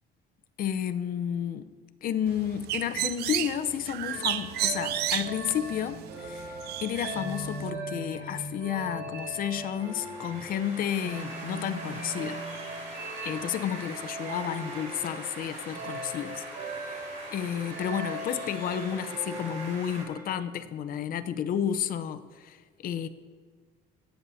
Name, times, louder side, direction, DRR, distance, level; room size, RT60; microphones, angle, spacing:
voice 1, 0.6-1.7 2.0-6.5 6.8-12.4 13.2-16.4 16.7-17.0 17.3-23.1, left 9 dB, 60° left, 12 dB, 0.7 m, -31 dB
Bird, 2.3-7.7, right 13 dB, 75° right, 0.5 m, -33 dB
sound 1, 4.0-20.5, right 1 dB, 90° right, 2.7 m, -40 dB
sound 2, 9.3-20.0, right 2 dB, 45° right, 3.7 m, -43 dB
17.5 x 9.1 x 2.8 m, 1.5 s
cardioid pair, 110°, 17 cm